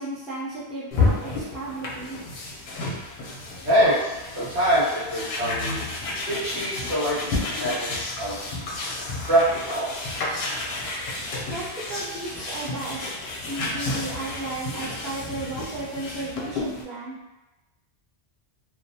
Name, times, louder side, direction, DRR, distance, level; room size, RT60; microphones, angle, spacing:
voice 1, 0.0-2.2 11.5-13.1 13.5-17.2, right 2 dB, ahead, -9 dB, 0.4 m, -34 dB
sound 1, 0.9-16.8, left 2 dB, 60° left, 0.7 m, -31 dB
voice 2, 3.6-5.8 6.3-8.4 9.3-9.9, right 1 dB, 75° right, -8 dB, 1.2 m, -24 dB
2.4 x 2.1 x 2.7 m, 1.1 s
omnidirectional pair, 1.1 m